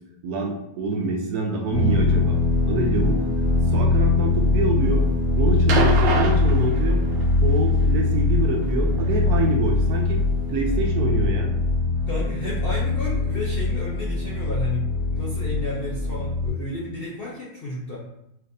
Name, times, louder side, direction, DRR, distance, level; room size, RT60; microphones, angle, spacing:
voice 1, 0.2-2.4 2.7-3.3 3.7-5.0 5.4-7.0 7.4-10.2 10.5-11.5, right 3 dB, 65° right, 1 dB, 1.1 m, -26 dB
sound 1, 1.7-16.5, left 3 dB, 45° left, 1.3 m, -22 dB
sound 2, 5.7-7.3 8.6-8.7, right 4 dB, 85° right, 1.4 m, -25 dB
voice 2, 12.1-18.0, left 1 dB, 80° left, -6 dB, 0.5 m, -32 dB
6.0 x 2.5 x 2.6 m, 0.80 s
omnidirectional pair, 1.9 m